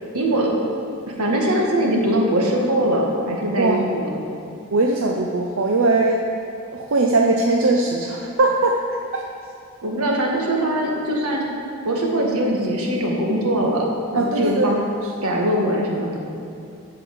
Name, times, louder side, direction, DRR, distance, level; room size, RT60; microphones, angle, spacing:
voice 1, 0.1-0.5 1.1-4.1 9.8-11.4 11.8-13.9 14.1-14.8 15.2-16.2, right 1 dB, 85° right, -1 dB, 1.8 m, -21 dB
voice 2, 4.7-6.2 6.7-8.8 9.1-9.2 14.2-14.7, right 2 dB, 65° right, 1 dB, 0.6 m, -20 dB
8.6 x 6.8 x 7.0 m, 2.6 s
head